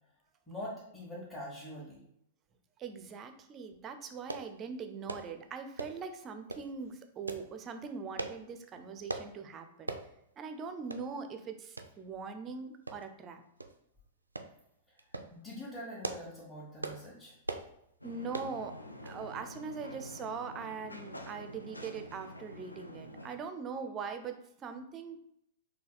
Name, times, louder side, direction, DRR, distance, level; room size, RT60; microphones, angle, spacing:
voice 1, 0.5-2.0 14.9-15.0 15.3-17.4, equal, 15° left, -7 dB, 1.3 m, -44 dB
voice 2, 2.8-9.9 10.4-13.4 18.0-18.8 19.0-25.2, right 5 dB, 25° right, 7 dB, 0.5 m, -41 dB
sound 1, 4.3-4.5 5.1-5.3 5.8-6.0 6.5-6.7 7.3-7.5 8.2-8.4 9.1-9.3 9.9-10.1 10.5-10.6 10.9-11.1 11.8-11.9 12.9-13.2 13.6-13.7 14.4-14.5 15.0-15.3 15.8-16.3 16.8-17.0 17.4-17.7 18.3-18.5 19.1-19.2 19.5-19.6, right 2 dB, 85° right, 0.3 m, -39 dB
sound 2, 18.0-23.4, equal, 90° left, 0.4 m, -48 dB
4.0 x 2.8 x 3.9 m, 0.76 s
figure-of-eight pair, 100°, 0 cm